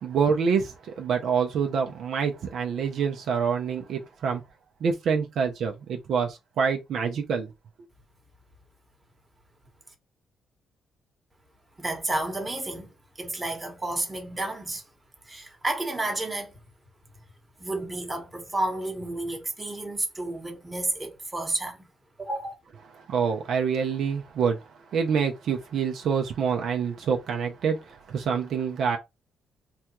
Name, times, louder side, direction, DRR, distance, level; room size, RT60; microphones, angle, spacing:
voice 1, 0.0-4.4 4.8-7.5 23.1-29.0, right 6 dB, 70° right, 0.5 m, -26 dB
voice 2, 11.8-14.8 15.2-16.6 17.6-21.9 22.2-22.6, right 2 dB, 15° right, 1.1 m, -31 dB
3.4 x 2.3 x 2.9 m
cardioid pair, 90°, 0 cm